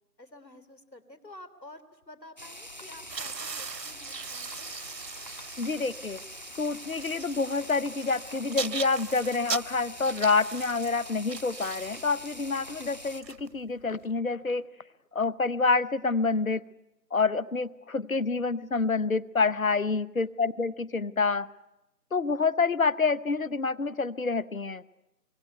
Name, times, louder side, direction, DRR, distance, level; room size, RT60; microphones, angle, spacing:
voice 1, 0.2-4.7 20.2-20.5, left 1 dB, 85° left, 12 dB, 3.7 m, -50 dB
sound 1, 2.4-13.2, equal, 25° left, 1.0 m, -44 dB
sound 2, 3.1-14.0, right 5 dB, 80° right, 0.9 m, -40 dB
voice 2, 5.6-6.2 6.6-14.6 15.1-16.6 17.1-21.5 22.1-24.8, left 4 dB, 55° left, 18 dB, 1.0 m, -27 dB
25.0 x 23.5 x 9.3 m, 0.92 s
figure-of-eight pair, 165°, 49 cm